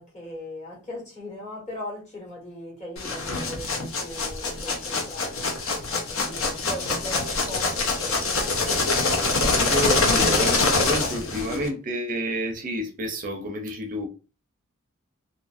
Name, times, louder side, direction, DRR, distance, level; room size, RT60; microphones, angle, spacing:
voice 1, 0.0-5.4 6.1-8.9, left 1 dB, 30° left, 1.3 m, -39 dB
sound 1, 3.0-11.7, left 3 dB, 65° left, 0.7 m, -24 dB
voice 2, 9.4-14.1, equal, 40° right, 0.5 m, -29 dB
2.6 x 2.4 x 2.4 m
head